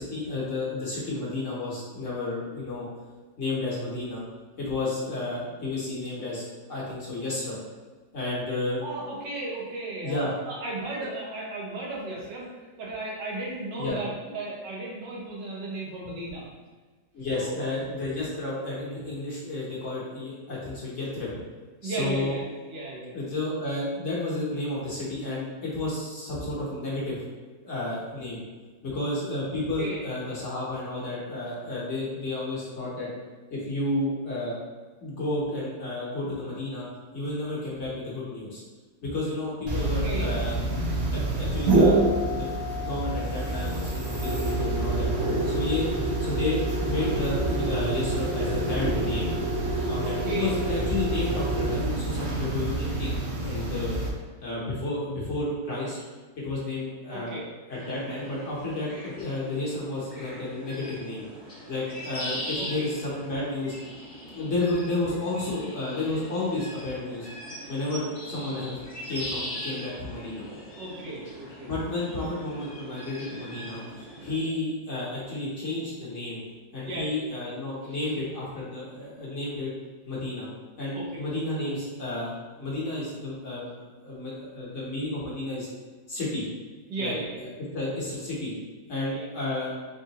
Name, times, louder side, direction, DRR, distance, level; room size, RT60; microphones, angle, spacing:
voice 1, 0.0-2.9 3.4-4.2 4.6-6.4 6.7-7.6 8.1-8.8 10.0-10.3 13.8-14.0 17.1-21.3 21.8-22.4 23.1-27.2 27.6-28.4 28.8-33.1 33.5-34.6 35.0-36.9 37.1-38.6 39.0-40.6 41.1-42.5 42.8-45.1 45.4-49.3 49.9-54.0 54.4-56.0 56.4-57.4 57.7-61.2 61.7-63.7 64.3-67.3 67.7-68.8 69.1-70.4 71.7-76.4 76.7-79.7 80.1-80.5 80.8-83.7 84.0-85.7 86.1-86.4 87.0-87.1 87.7-88.5 88.9-89.7, left 2 dB, 50° left, -6 dB, 1.1 m, -31 dB
voice 2, 8.8-12.5 12.8-16.5 17.3-17.8 21.8-23.2 29.8-30.0 39.8-40.4 50.0-50.5 57.1-57.5 62.6-62.9 70.5-71.7 74.4-74.5 76.8-77.4 80.9-81.1 86.9-87.5 89.1-89.3, right 2 dB, 80° right, -4 dB, 1.6 m, -35 dB
sound 1, 39.7-54.1, right 2 dB, 55° right, 0.8 m, -27 dB
sound 2, 57.7-74.4, equal, 25° left, 0.8 m, -41 dB
3.7 x 3.5 x 2.8 m, 1.3 s
omnidirectional pair, 1.9 m